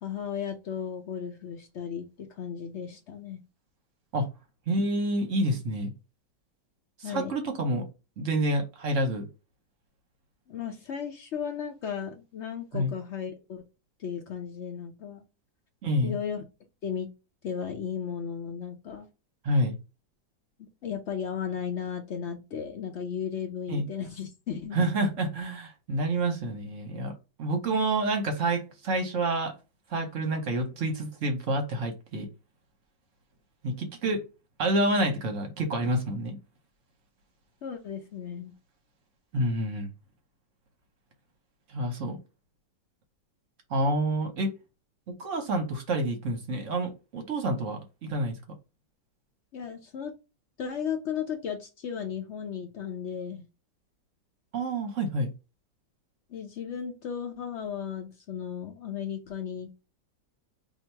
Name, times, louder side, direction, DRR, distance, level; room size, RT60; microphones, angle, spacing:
voice 1, 0.0-3.4 7.0-7.3 10.5-13.6 14.0-15.2 16.0-16.4 16.8-17.1 17.4-19.1 20.8-24.8 37.6-38.5 49.5-50.1 50.6-53.4 56.3-59.7, left 7 dB, 80° left, 4 dB, 0.6 m, -35 dB
voice 2, 4.7-5.9 7.0-7.8 8.2-9.3 12.7-12.9 15.8-16.2 19.4-19.8 23.7-23.9 24.7-27.1 27.4-29.5 29.9-32.3 33.6-34.2 34.6-36.4 39.3-39.9 41.7-42.2 43.7-44.5 45.1-48.4 54.5-55.3, right 1 dB, 55° right, 4 dB, 1.0 m, -28 dB
2.8 x 2.6 x 4.3 m, 0.29 s
omnidirectional pair, 1.9 m